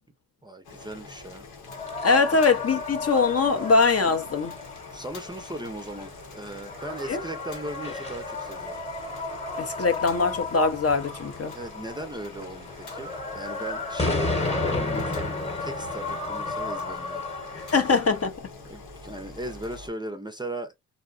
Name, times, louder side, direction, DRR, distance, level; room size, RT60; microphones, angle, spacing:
voice 1, 0.4-1.4 2.3-2.4 4.9-8.8 11.5-17.2 17.5-17.7 18.6-20.7, right 1 dB, 10° right, 0.5 m, -37 dB
Boiling, 0.6-19.9, left 3 dB, 90° left, 1.1 m, -45 dB
sound 1, 1.7-18.3, left 3 dB, 15° left, 1.0 m, -33 dB
voice 2, 2.0-4.6 7.1-7.2 9.6-11.5 17.6-18.3, left 4 dB, 40° left, 0.6 m, -22 dB
2.7 x 2.1 x 2.4 m
cardioid pair, 60°, 39 cm